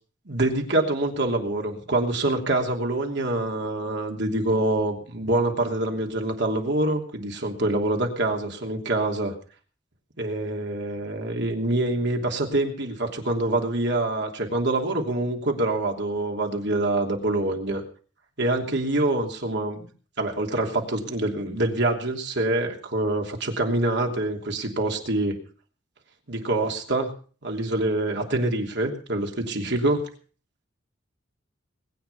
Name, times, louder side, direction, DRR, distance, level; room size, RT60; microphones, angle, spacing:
voice 1, 0.3-9.3 10.2-17.8 18.4-19.9 20.2-25.4 26.3-27.1 27.4-30.1, right 2 dB, 65° right, 2 dB, 3.0 m, -25 dB
20.5 x 9.2 x 5.6 m, 0.41 s
head